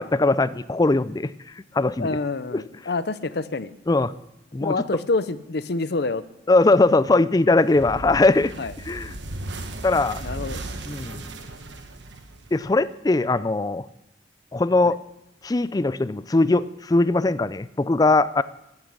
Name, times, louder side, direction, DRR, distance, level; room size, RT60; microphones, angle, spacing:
voice 1, 0.0-1.3 1.7-2.1 2.5-2.6 3.9-4.1 4.5-5.0 6.5-8.5 8.9-9.1 9.8-10.2 10.9-11.2 12.5-13.9 14.5-15.0 15.4-18.4, left 2 dB, 20° left, 16 dB, 0.4 m, -20 dB
voice 2, 2.0-3.7 4.6-6.2 8.6-8.7 10.2-10.6 14.8-14.9, left 3 dB, 60° left, 14 dB, 0.7 m, -27 dB
sound 1, 7.7-12.9, right 2 dB, 75° right, 1.3 m, -36 dB
14.5 x 8.9 x 6.4 m, 0.88 s
head